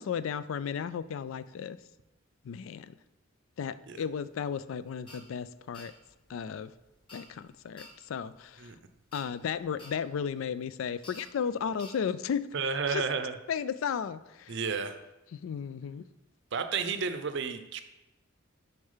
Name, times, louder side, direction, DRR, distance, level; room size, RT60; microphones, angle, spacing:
voice 1, 0.0-1.8 2.4-2.9 3.6-5.9 6.3-6.7 7.1-8.7 9.1-12.5 12.9-13.0 13.5-14.6 15.3-16.0, left 7 dB, 70° left, 15 dB, 0.3 m, -34 dB
sound 1, 4.1-11.9, left 1 dB, 25° left, 2.5 m, -54 dB
voice 2, 12.5-13.3 14.5-14.9 16.5-17.8, right 5 dB, 60° right, 9 dB, 0.6 m, -31 dB
6.4 x 4.5 x 5.6 m, 1.0 s
head